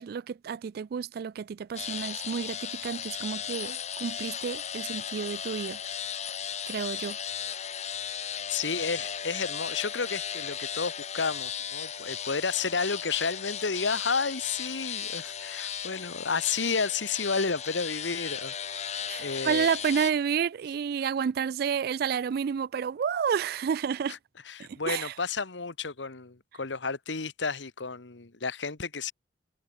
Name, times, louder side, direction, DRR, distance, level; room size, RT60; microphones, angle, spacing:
voice 1, 0.0-5.8 6.7-7.2 19.1-24.2 24.6-25.1, right 7 dB, 55° right, 0.3 m, -30 dB
sound 1, 1.8-20.1, left 8 dB, 40° left, 1.1 m, -36 dB
voice 2, 8.5-19.7 24.1-24.2 24.5-29.1, left 4 dB, 85° left, 1.4 m, -31 dB
head